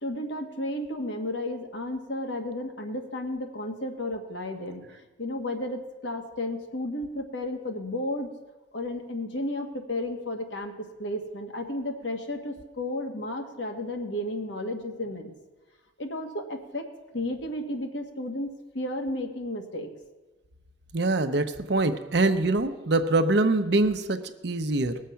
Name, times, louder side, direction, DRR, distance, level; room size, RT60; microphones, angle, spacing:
voice 1, 0.0-4.8 5.2-8.3 8.7-10.7 11.0-15.3 16.0-16.9 17.1-19.9, left 1 dB, 75° left, 3 dB, 1.7 m, -33 dB
voice 2, 20.9-25.0, right 2 dB, 65° right, 9 dB, 0.8 m, -24 dB
19.0 x 7.4 x 5.7 m, 1.2 s
head